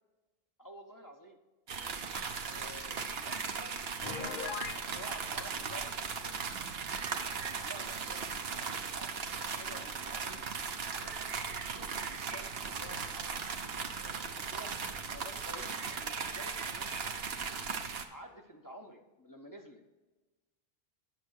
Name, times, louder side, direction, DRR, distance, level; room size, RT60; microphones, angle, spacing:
voice 1, 0.6-1.4 2.5-3.9 4.2-6.5 7.3-10.4 10.9-14.7 15.1-17.6 18.1-19.8, equal, 20° left, 2 dB, 0.9 m, -51 dB
sound 1, 1.7-18.1, right 5 dB, 70° right, 1.1 m, -38 dB
Piano, 4.0-4.8, left 6 dB, 55° left, 0.9 m, -38 dB
9.4 x 6.6 x 6.5 m, 1.2 s
omnidirectional pair, 1.1 m